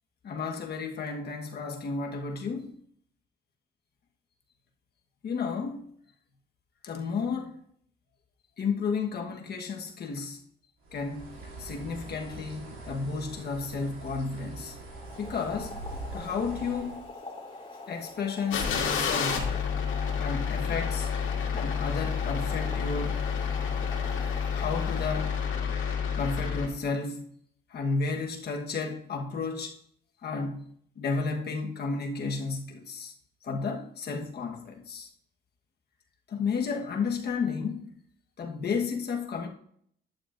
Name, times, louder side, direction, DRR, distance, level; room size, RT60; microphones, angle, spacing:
voice 1, 0.2-2.7 5.2-5.8 6.8-7.6 8.6-10.4 10.9-11.3 11.6-14.8 15.2-15.7 16.1-17.0 17.9-19.6 20.2-21.1 21.5-23.2 24.5-25.4 26.2-27.3 27.7-29.8 30.2-30.7 31.0-33.1 33.4-35.1 36.3-37.9 38.4-39.5, left 4 dB, 55° left, 1.3 m, -32 dB
Bird, 10.8-17.1, right 2 dB, 90° right, 2.7 m, -43 dB
Boiling, 14.9-25.9, left 2 dB, 25° left, 2.6 m, -44 dB
sound 1, 18.5-26.7, left 6 dB, 80° left, 2.2 m, -29 dB
11.0 x 8.9 x 2.6 m
cardioid pair, 90°, 20 cm